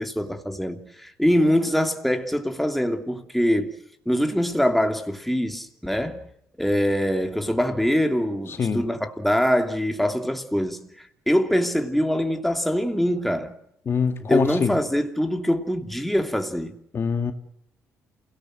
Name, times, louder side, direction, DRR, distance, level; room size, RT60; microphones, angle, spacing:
voice 1, 0.0-3.7 4.1-6.2 6.6-13.5 14.3-16.7, equal, ahead, 2.9 m, -24 dB
voice 2, 8.5-8.9 13.9-14.8 16.9-17.3, left 6 dB, 45° left, 2.2 m, -24 dB
28.0 x 18.0 x 7.7 m
cardioid pair, 80°, 6 cm